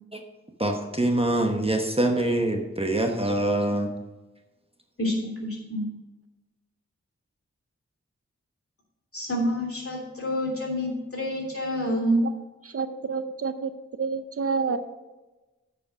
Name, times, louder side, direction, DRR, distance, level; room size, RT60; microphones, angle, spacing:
voice 1, 0.6-3.9, right 1 dB, 20° right, 3 dB, 1.0 m, -24 dB
voice 2, 5.4-5.8 9.1-12.2, equal, 50° left, -3 dB, 3.1 m, -27 dB
voice 3, 12.6-13.7 14.0-14.8, right 5 dB, 50° right, 10 dB, 0.5 m, -28 dB
8.9 x 5.0 x 6.0 m, 1.1 s
wide cardioid pair, 60°, 29 cm